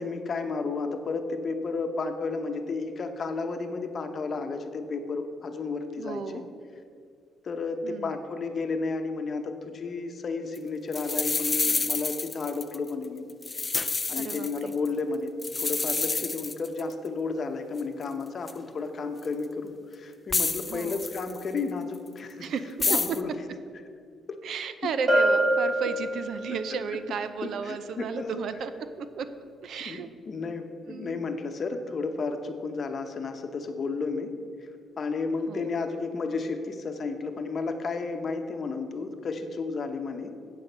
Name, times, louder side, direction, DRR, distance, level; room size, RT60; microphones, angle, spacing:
voice 1, 0.0-6.4 7.4-13.3 14.1-22.5 22.9-23.3 24.3-24.4 27.4-28.4 29.8-34.4 35.0-40.3, left 4 dB, 45° left, 6 dB, 0.9 m, -32 dB
voice 2, 6.0-6.5 7.8-8.2 14.1-14.8 20.7-21.1 22.4-22.9 24.4-28.7 29.0-29.3 29.6-30.1 30.8-31.2 35.5-35.8, right 6 dB, 70° right, 11 dB, 0.6 m, -34 dB
sound 1, 10.6-10.7 10.9-12.9 13.3-14.9 15.4-16.9 17.8-17.9 18.5-18.6 19.2-19.3 20.3-21.6 22.8-23.2, left 3 dB, 25° left, 0.4 m, -29 dB
Bell, 25.1-26.7, right 1 dB, 40° right, 1.8 m, -24 dB
8.1 x 7.7 x 5.5 m, 2.2 s
cardioid pair, 90°, 0 cm